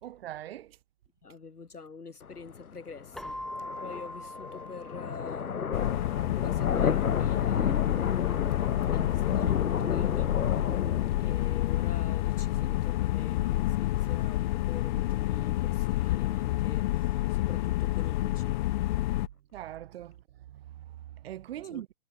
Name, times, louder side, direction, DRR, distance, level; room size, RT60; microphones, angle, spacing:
voice 1, 0.0-0.8 19.5-20.2 20.5-22.0, right 13 dB, 40° right, 3.6 m, -41 dB
voice 2, 1.2-3.4 3.8-5.7 6.4-10.4 11.0-19.1 21.6-21.8, left 4 dB, 90° left, 5.1 m, -46 dB
sound 1, 2.2-16.1, left 6 dB, 70° left, 4.5 m, -33 dB
Keyboard (musical), 3.1-5.9, left 1 dB, ahead, 1.8 m, -42 dB
sound 2, 5.7-19.3, left 16 dB, 30° left, 1.7 m, -29 dB
hypercardioid pair, 145°, 44 cm